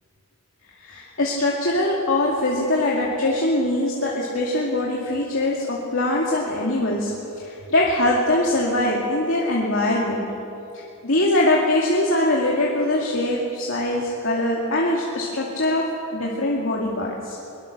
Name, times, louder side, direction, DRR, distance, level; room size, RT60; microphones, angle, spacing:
voice 1, 0.8-10.2 10.7-17.4, left 1 dB, 65° left, -3 dB, 2.4 m, -22 dB
22.0 x 21.5 x 6.7 m, 2.8 s
head